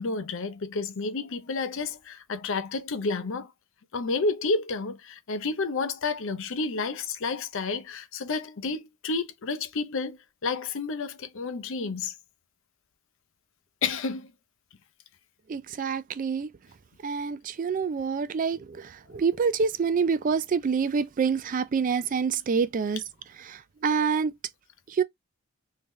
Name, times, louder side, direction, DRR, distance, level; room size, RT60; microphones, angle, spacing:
voice 1, 0.0-3.5 3.9-10.2 10.4-12.1 13.8-14.3, left 3 dB, 60° left, 0.6 m, -30 dB
voice 2, 15.5-16.5 17.0-23.0 23.4-24.3 24.9-25.0, right 5 dB, 35° right, 0.3 m, -27 dB
3.5 x 2.7 x 3.1 m
head